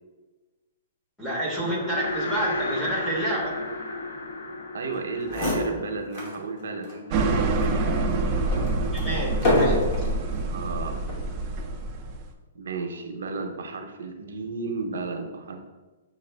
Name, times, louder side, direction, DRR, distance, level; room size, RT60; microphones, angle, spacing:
voice 1, 1.2-3.5 8.9-9.9, equal, 5° left, -7 dB, 0.7 m, -28 dB
sound 1, 1.5-6.9, left 2 dB, 70° left, 0.5 m, -33 dB
voice 2, 4.7-8.1 10.5-11.0 12.5-15.6, right 3 dB, 90° right, 5 dB, 0.6 m, -33 dB
sound 2, 5.0-5.1 5.2-6.4 6.8-7.0 7.6-10.2 11.0-11.3, left 1 dB, 30° left, 1.0 m, -27 dB
sound 3, 7.1-12.3, right 3 dB, 20° right, 0.3 m, -26 dB
6.5 x 2.4 x 3.3 m, 1.2 s
hypercardioid pair, 180°, 0 cm